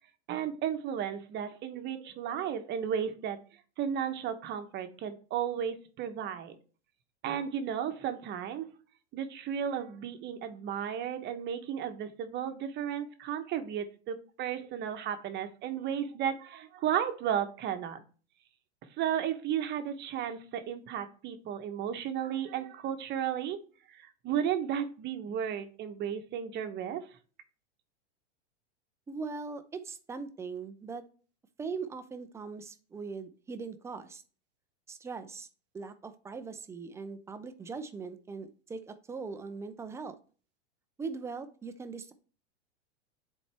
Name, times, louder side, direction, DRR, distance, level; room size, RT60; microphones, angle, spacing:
voice 1, 0.3-3.4 3.8-6.5 7.2-8.7 9.1-18.0 19.0-23.6 23.9-27.0, right 9 dB, 30° right, 8 dB, 0.9 m, -34 dB
voice 2, 29.1-31.0 31.6-34.2 34.9-35.5 35.7-40.2 41.0-42.1, right 4 dB, 10° right, 10 dB, 0.3 m, -40 dB
10.0 x 4.2 x 3.4 m, 0.39 s
hypercardioid pair, 130°, 35 cm